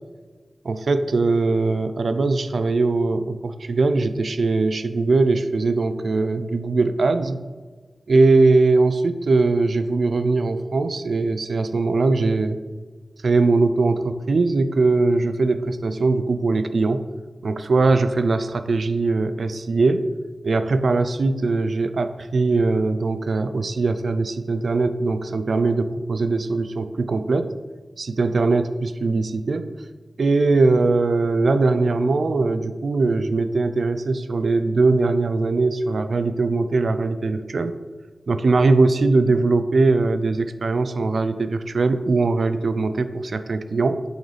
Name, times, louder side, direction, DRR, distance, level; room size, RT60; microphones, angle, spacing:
voice 1, 0.6-7.4 8.1-12.6 13.2-17.0 17.4-20.1 20.4-27.5 28.0-29.7 30.2-37.7 38.3-44.0, right 3 dB, 90° right, 10 dB, 0.4 m, -21 dB
8.6 x 4.0 x 3.3 m, 1.4 s
wide cardioid pair, 70°, 0 cm